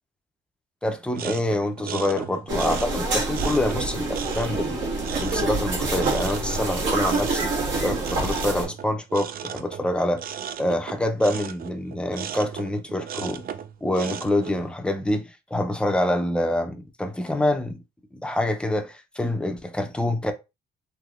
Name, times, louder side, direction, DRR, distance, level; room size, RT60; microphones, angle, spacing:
voice 1, 0.8-4.8 5.2-7.5 7.8-10.2 10.6-13.4 13.8-17.8 18.1-20.3, left 1 dB, 5° left, 0.5 m, -26 dB
sound 1, 1.1-14.7, right 9 dB, 50° right, 0.4 m, -36 dB
sound 2, 2.5-8.7, right 3 dB, 70° right, 1.4 m, -27 dB
3.4 x 2.6 x 2.4 m
cardioid pair, 90°, 20 cm